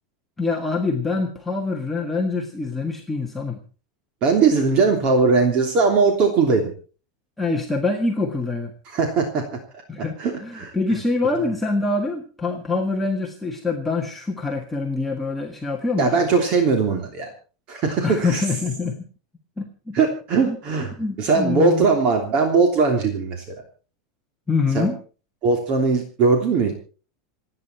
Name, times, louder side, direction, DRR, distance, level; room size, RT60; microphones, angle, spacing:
voice 1, 0.4-3.6 7.4-8.7 9.9-16.2 18.0-19.0 19.6-20.0 20.5-21.8 24.5-25.0, left 3 dB, 5° left, -1 dB, 1.6 m, -25 dB
voice 2, 4.2-6.7 8.9-9.4 10.2-10.7 16.0-17.3 17.7-18.4 19.9-20.9 21.2-23.4 24.7-24.9 25.4-26.7, right 4 dB, 35° right, 4 dB, 3.1 m, -20 dB
28.5 x 9.7 x 4.4 m, 0.38 s
supercardioid pair, 165°, 3 cm